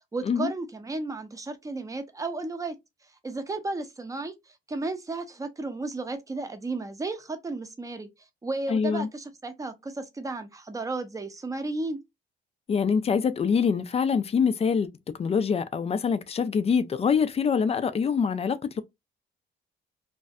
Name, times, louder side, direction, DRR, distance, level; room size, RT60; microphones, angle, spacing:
voice 1, 0.1-2.8 3.2-4.3 4.7-8.1 8.4-12.0, right 3 dB, 15° right, 0.6 m, -33 dB
voice 2, 8.7-9.1 12.7-14.9 15.2-18.8, left 6 dB, 30° left, 0.3 m, -25 dB
2.5 x 2.0 x 2.4 m
cardioid pair, 90°, 20 cm